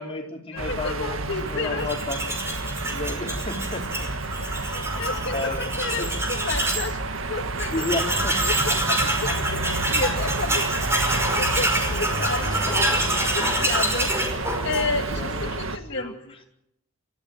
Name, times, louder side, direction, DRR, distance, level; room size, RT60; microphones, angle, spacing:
voice 1, 0.0-2.2 2.8-4.1 4.9-5.0 5.3-6.1 7.7-8.3 13.3-13.4 15.2-15.6 15.9-16.2, left 2 dB, 25° left, 0 dB, 4.7 m, -32 dB
voice 2, 0.5-1.9 4.4-7.0 7.3-7.8 8.3-11.0 11.3-14.1 14.6-16.1, left 3 dB, 55° left, 3 dB, 1.8 m, -31 dB
sound 1, 0.6-15.8, right 2 dB, 70° right, 1.9 m, -30 dB
Tools, 1.8-6.9 7.3-7.4 7.6-15.2, right 1 dB, 10° right, 5.3 m, -26 dB
29.5 x 15.0 x 7.9 m, 0.81 s
head